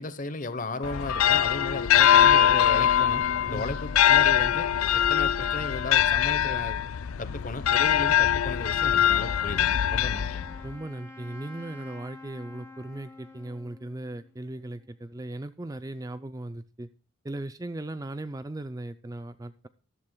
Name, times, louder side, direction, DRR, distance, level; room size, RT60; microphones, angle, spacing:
voice 1, 0.0-6.8 7.2-10.5, left 2 dB, 40° left, 1.0 m, -35 dB
sound 1, 0.8-10.7, left 10 dB, 85° left, 0.4 m, -22 dB
Wind instrument woodwind instrument, 9.2-14.9, left 2 dB, 10° left, 2.4 m, -48 dB
voice 2, 10.6-16.9 17.2-19.7, right 1 dB, 15° right, 0.4 m, -38 dB
14.5 x 12.0 x 2.3 m
head